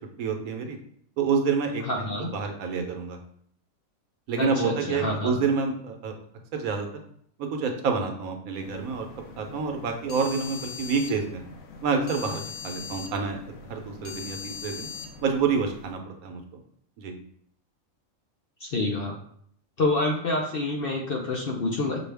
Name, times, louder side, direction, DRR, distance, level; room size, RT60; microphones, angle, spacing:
voice 1, 0.2-0.8 1.2-3.2 4.3-6.2 6.5-6.9 7.4-9.1 9.4-11.4 11.8-14.9 15.2-16.6 17.0-17.2, right 5 dB, 80° right, 4 dB, 1.2 m, -28 dB
voice 2, 1.8-2.3 4.4-5.3 18.6-19.2 19.8-22.0, left 2 dB, 55° left, 0 dB, 0.7 m, -27 dB
sound 1, 8.6-15.9, left 6 dB, 75° left, 1.0 m, -41 dB
6.1 x 2.3 x 3.3 m, 0.64 s
omnidirectional pair, 1.5 m